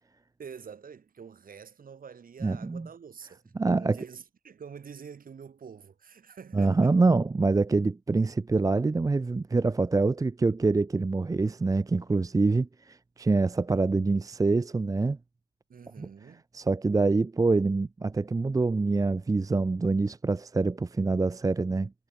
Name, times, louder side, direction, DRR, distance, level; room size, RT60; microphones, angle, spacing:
voice 1, 0.4-3.4 3.7-7.0 15.7-16.4, right 6 dB, 45° right, 4.9 m, -46 dB
voice 2, 2.4-2.9 3.6-4.0 6.5-15.2 16.0-16.1 16.5-21.9, right 3 dB, 15° right, 0.7 m, -25 dB
cardioid pair, 90°, 20 cm